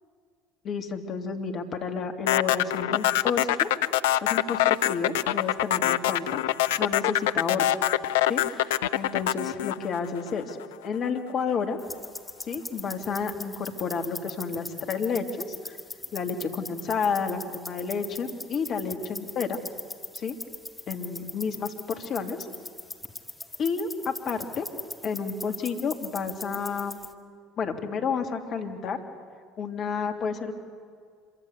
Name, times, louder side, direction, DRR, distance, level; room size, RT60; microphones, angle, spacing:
voice 1, 0.6-3.7 4.2-7.6 8.3-10.6 10.8-11.8 12.5-15.3 15.6-15.8 16.1-19.6 20.1-20.4 20.9-22.4 23.6-24.7 25.0-27.0 27.6-29.0 29.6-30.5, left 5 dB, 45° left, 5 dB, 3.0 m, -31 dB
sound 1, 2.3-10.6, left 13 dB, 70° left, 0.6 m, -24 dB
sound 2, 11.8-27.1, left 2 dB, 10° left, 2.2 m, -41 dB
26.5 x 24.0 x 8.3 m, 2.1 s
figure-of-eight pair, 65°, 0 cm